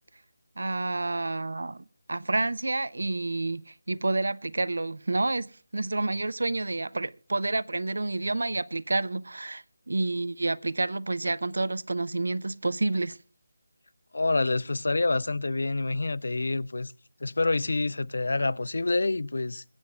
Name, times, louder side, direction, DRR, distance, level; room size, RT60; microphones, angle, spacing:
voice 1, 0.6-13.2, right 2 dB, 65° right, 0.5 m, -29 dB
voice 2, 14.1-16.9 17.2-19.6, left 3 dB, 60° left, 0.5 m, -27 dB
23.0 x 9.5 x 2.3 m
figure-of-eight pair, 160°, 0 cm